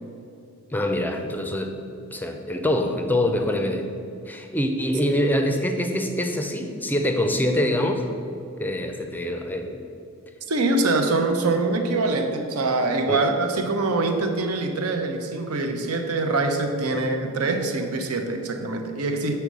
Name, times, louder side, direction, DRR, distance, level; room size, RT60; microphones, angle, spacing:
voice 1, 0.7-1.7 2.1-3.8 4.3-8.0 8.6-9.8 13.0-13.2 16.9-17.0, left 1 dB, 10° left, 5 dB, 0.5 m, -24 dB
voice 2, 10.5-19.3, right 2 dB, 80° right, 5 dB, 0.8 m, -24 dB
6.8 x 4.3 x 6.1 m, 2.7 s
head